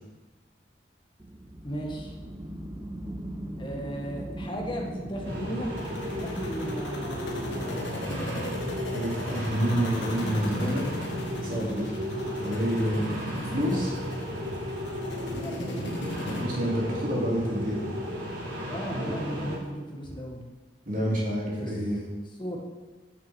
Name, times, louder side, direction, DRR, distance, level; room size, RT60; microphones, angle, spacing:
sound 1, 1.2-13.3, right 1 dB, 15° right, 0.5 m, -41 dB
voice 1, 1.6-2.1 3.6-5.7 6.2-7.7 15.2-15.9 18.7-20.4 21.6-21.8 22.4-22.6, equal, 30° left, 0 dB, 1.6 m, -36 dB
sound 2, 5.2-19.6, equal, 90° right, 3.0 m, -34 dB
sound 3, 5.8-16.4, left 1 dB, 80° left, 1.4 m, -38 dB
voice 2, 8.9-11.1 11.4-12.0 12.4-13.9 16.2-17.8 19.0-19.1 20.9-22.0, equal, 50° right, -4 dB, 3.0 m, -28 dB
9.4 x 5.8 x 6.1 m, 1.3 s
head